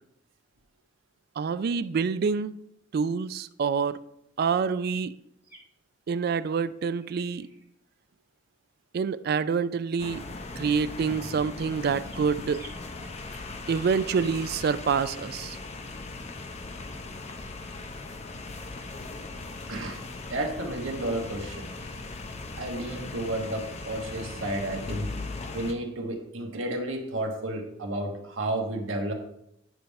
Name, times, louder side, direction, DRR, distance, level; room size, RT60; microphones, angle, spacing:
voice 1, 1.4-2.6 2.9-4.0 4.4-5.1 6.1-7.5 8.9-10.2 10.6-12.6 13.7-15.6, right 5 dB, 50° right, 14 dB, 0.3 m, -27 dB
sound 1, 4.9-5.0 5.4-5.9 7.0-7.7 11.0-11.2 11.5-11.7 12.0-12.2 12.5-12.8, right 2 dB, 10° right, 1.6 m, -51 dB
sound 2, 10.0-25.7, left 3 dB, 30° left, 0.6 m, -39 dB
voice 2, 19.7-20.0 20.3-21.7 22.6-25.1 25.5-29.1, right 1 dB, 70° right, 2 dB, 1.2 m, -32 dB
9.1 x 3.4 x 5.3 m, 0.77 s
head